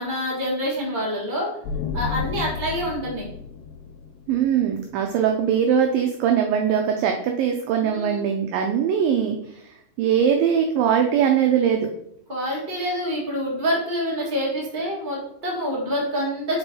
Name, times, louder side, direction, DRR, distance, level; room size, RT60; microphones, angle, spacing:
voice 1, 0.0-1.5 1.9-3.2 7.8-8.2 12.3-16.6, equal, 35° right, -5 dB, 0.7 m, -26 dB
sound 1, 1.6-5.3, left 5 dB, 90° left, 2.8 m, -32 dB
voice 2, 4.3-9.6 10.0-11.9, right 8 dB, 85° right, 3 dB, 2.0 m, -21 dB
5.4 x 5.4 x 4.4 m, 0.76 s
omnidirectional pair, 4.7 m